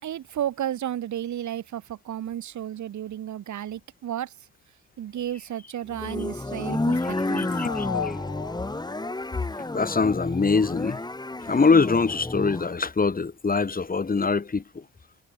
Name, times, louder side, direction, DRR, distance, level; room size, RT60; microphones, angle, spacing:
voice 1, 0.0-4.5 5.0-7.6, right 11 dB, 70° right, 7.1 m, -33 dB
sound 1, 5.9-12.8, left 2 dB, 15° left, 4.2 m, -30 dB
sound 2, 6.9-10.4, left 8 dB, 55° left, 5.5 m, -37 dB
voice 2, 7.4-8.2 9.7-11.0 11.5-14.8, left 4 dB, 30° left, 4.2 m, -23 dB
cardioid pair, 90°, 30 cm